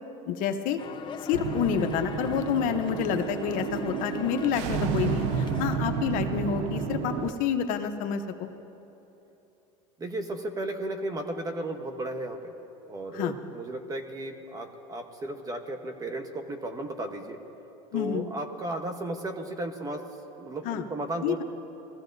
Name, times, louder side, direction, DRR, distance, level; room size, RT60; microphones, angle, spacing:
voice 1, 0.3-0.8 1.2-8.5 13.1-13.3 17.9-18.3 20.6-20.8 21.2-21.4, left 8 dB, 55° left, 7 dB, 0.8 m, -28 dB
sound 1, 0.8-5.8, left 8 dB, 30° left, 0.5 m, -40 dB
sound 2, 1.3-7.3, right 7 dB, 75° right, 0.6 m, -31 dB
voice 2, 10.0-12.5 12.9-17.4 17.9-20.0 20.4-21.4, right 1 dB, 20° right, 6 dB, 1.0 m, -34 dB
21.0 x 15.0 x 2.6 m, 3.0 s
supercardioid pair, 120°, 16 cm